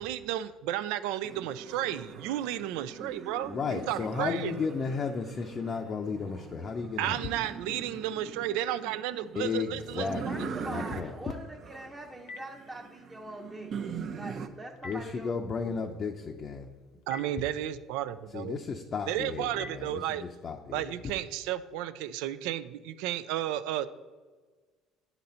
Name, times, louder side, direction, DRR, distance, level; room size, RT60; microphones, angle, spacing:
voice 1, 0.0-4.5 7.0-10.5 17.1-18.6 19.1-20.2 20.7-23.9, right 12 dB, 85° right, 13 dB, 0.4 m, -33 dB
sound 1, 1.2-14.5, right 6 dB, 50° right, 0.6 m, -42 dB
voice 2, 3.4-7.2 9.3-11.1 14.8-16.7 18.3-20.9, left 5 dB, 40° left, 3 dB, 0.5 m, -34 dB
voice 3, 9.9-13.7 14.1-15.4 15.6-15.9 17.1-17.3, right 1 dB, 15° right, -2 dB, 0.8 m, -43 dB
Telephone, 11.6-20.4, left 3 dB, 80° left, 0.9 m, -53 dB
9.5 x 4.0 x 4.3 m, 1.4 s
cardioid pair, 110°, 0 cm